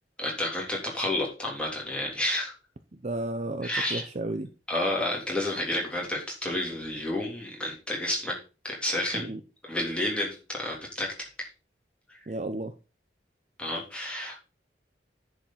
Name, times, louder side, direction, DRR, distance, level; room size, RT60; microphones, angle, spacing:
voice 1, 0.2-2.5 3.6-4.0 4.7-8.3 8.6-9.3 9.6-11.3 13.6-14.4, left 1 dB, 5° left, -3 dB, 3.3 m, -30 dB
voice 2, 2.9-4.5 9.1-9.4 12.3-12.7, right 2 dB, 40° right, 8 dB, 0.7 m, -33 dB
10.5 x 5.0 x 5.7 m, 0.33 s
head